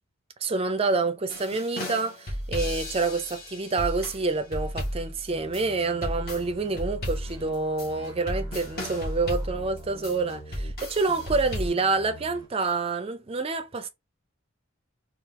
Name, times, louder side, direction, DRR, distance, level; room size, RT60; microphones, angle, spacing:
voice 1, 0.4-13.9, right 3 dB, 30° right, 0.4 m, -27 dB
sound 1, 1.3-11.7, equal, 50° left, 1.5 m, -34 dB
sound 2, 5.3-10.8 11.1-12.5, right 1 dB, 25° left, 1.4 m, -45 dB
4.0 x 2.4 x 3.6 m
head